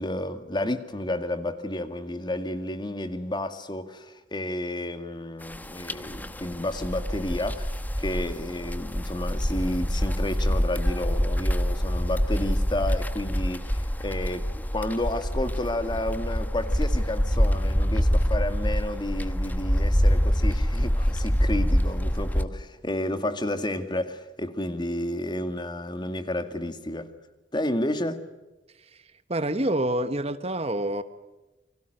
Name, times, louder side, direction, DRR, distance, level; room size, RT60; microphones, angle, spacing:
voice 1, 0.0-14.5 14.7-27.1 27.5-28.3, left 1 dB, 25° left, 2.0 m, -31 dB
sound 1, 5.4-22.4, equal, 10° left, 1.1 m, -26 dB
voice 2, 29.3-31.0, right 1 dB, 35° right, 1.2 m, -27 dB
29.5 x 25.5 x 6.6 m
head